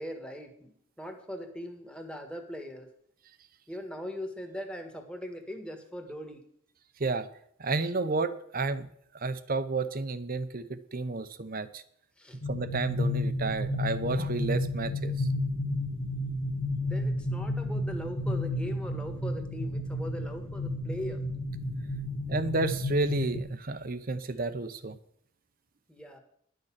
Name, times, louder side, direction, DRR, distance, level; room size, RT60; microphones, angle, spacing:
voice 1, 0.0-2.9 3.7-6.4 12.2-12.4 16.8-21.2 25.9-26.2, left 1 dB, 5° left, 4 dB, 1.6 m, -40 dB
voice 2, 7.6-8.9 9.1-11.8 12.5-15.3 22.3-25.0, right 3 dB, 45° right, 12 dB, 0.8 m, -31 dB
sound 1, 12.4-23.4, left 1 dB, 65° left, 1.4 m, -32 dB
11.5 x 6.6 x 7.4 m, 0.67 s
head